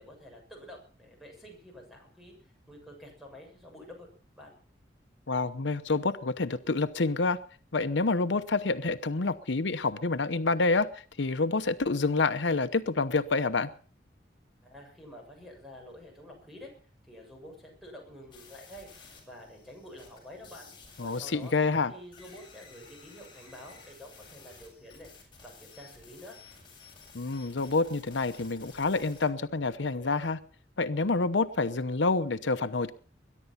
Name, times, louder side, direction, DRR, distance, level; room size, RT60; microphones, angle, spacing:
voice 1, 0.0-4.1 4.4-4.6 14.6-16.7 17.1-18.9 19.2-20.7 21.0-21.5 21.9-25.1 25.4-26.4, left 1 dB, ahead, 0 dB, 7.4 m, -49 dB
voice 2, 5.3-7.4 7.7-13.7 21.0-21.9 27.1-30.4 30.8-32.9, left 3 dB, 85° left, 11 dB, 0.9 m, -28 dB
sound 1, 18.3-29.3, left 5 dB, 25° left, 7.2 m, -54 dB
22.0 x 11.0 x 5.7 m, 0.43 s
head